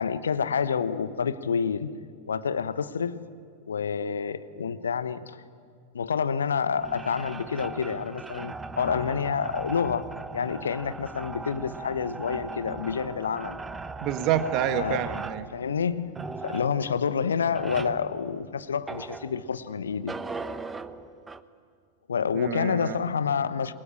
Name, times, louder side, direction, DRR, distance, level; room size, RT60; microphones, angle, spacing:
voice 1, 0.0-1.9 2.3-3.2 3.7-5.4 5.9-10.1 10.3-13.6 14.7-15.0 15.5-16.1 16.4-20.1 22.1-23.7, left 6 dB, 70° left, 13 dB, 1.1 m, -28 dB
sound 1, 6.8-19.7 20.1-21.4, right 3 dB, 15° right, 1.0 m, -38 dB
voice 2, 14.0-15.5 22.3-23.0, right 10 dB, 40° right, 9 dB, 1.7 m, -28 dB
27.5 x 23.0 x 8.8 m, 2.1 s
figure-of-eight pair, 90°, 0 cm